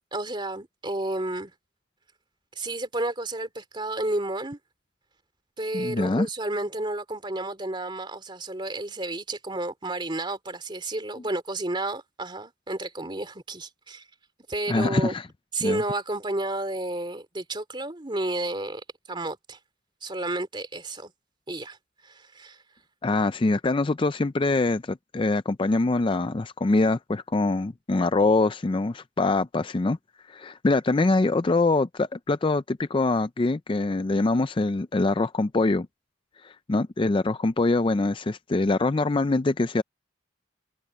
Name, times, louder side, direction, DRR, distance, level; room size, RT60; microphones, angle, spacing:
voice 1, 0.1-1.5 2.6-4.6 5.6-14.0 14.5-15.1 15.5-18.8 19.1-19.6 20.0-21.1 21.5-21.8 22.0-22.6, right 2 dB, 25° right, 3.0 m, -31 dB
voice 2, 5.7-6.3 14.7-15.3 15.6-15.8 23.0-30.0 30.3-35.9 36.4-39.8, left 2 dB, 25° left, 0.4 m, -24 dB
head